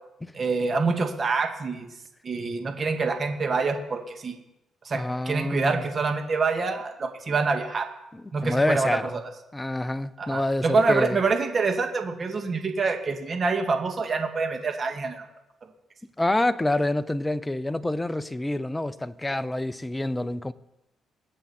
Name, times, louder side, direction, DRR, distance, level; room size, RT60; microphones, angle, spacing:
voice 1, 0.3-1.9 2.2-4.3 4.9-7.9 8.3-9.0 10.2-15.3, right 4 dB, 40° right, 1.9 m, -26 dB
voice 2, 4.9-5.8 8.1-9.2 9.5-11.2 16.2-20.5, left 1 dB, 10° left, 0.7 m, -27 dB
22.0 x 7.7 x 4.3 m
cardioid pair, 90°, 0 cm